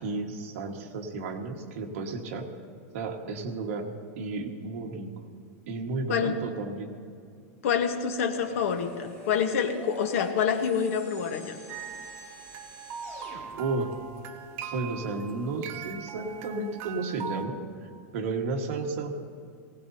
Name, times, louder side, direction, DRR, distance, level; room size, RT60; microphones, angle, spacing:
voice 1, 0.0-2.5 2.9-3.8 4.2-5.1 5.7-6.9 13.5-13.9 14.7-19.2, right 3 dB, 55° right, 1 dB, 1.6 m, -33 dB
voice 2, 7.6-11.6, left 7 dB, 60° left, 7 dB, 1.2 m, -27 dB
sound 1, 8.3-13.4, equal, 20° left, 4.4 m, -46 dB
sound 2, 11.7-17.5, right 7 dB, 25° right, 0.6 m, -41 dB
19.0 x 17.5 x 2.8 m, 2.3 s
supercardioid pair, 180°, 9 cm